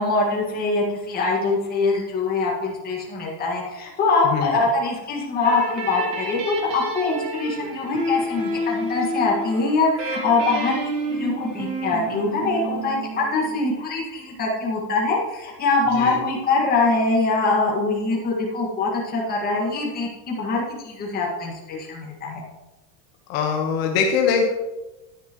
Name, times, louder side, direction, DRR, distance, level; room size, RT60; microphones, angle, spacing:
voice 1, 0.0-22.4, left 3 dB, 20° left, -4 dB, 1.8 m, -23 dB
sound 1, 5.4-13.9, right 1 dB, 15° right, 0.3 m, -30 dB
voice 2, 23.3-24.5, left 6 dB, 55° left, 1 dB, 1.4 m, -22 dB
10.5 x 9.7 x 3.1 m, 1.1 s
supercardioid pair, 175°, 50 cm